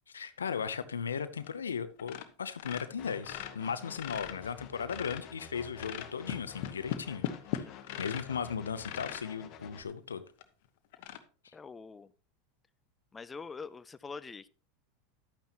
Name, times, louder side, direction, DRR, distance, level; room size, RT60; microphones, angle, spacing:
voice 1, 0.1-7.3 7.5-7.7 8.0-10.2, left 6 dB, 85° left, 0.7 m, -37 dB
sound 1, 1.4-1.7 2.0-2.3 2.6-5.4 5.8-8.4 8.8-9.3 9.9-10.0 10.4-10.5 10.9-11.2, left 11 dB, 65° left, 1.1 m, -39 dB
sound 2, 3.0-9.8, left 6 dB, 45° left, 1.4 m, -50 dB
voice 2, 11.5-12.1 13.1-14.5, left 5 dB, 20° left, 0.5 m, -44 dB
11.5 x 9.0 x 3.0 m
hypercardioid pair, 90°, 0 cm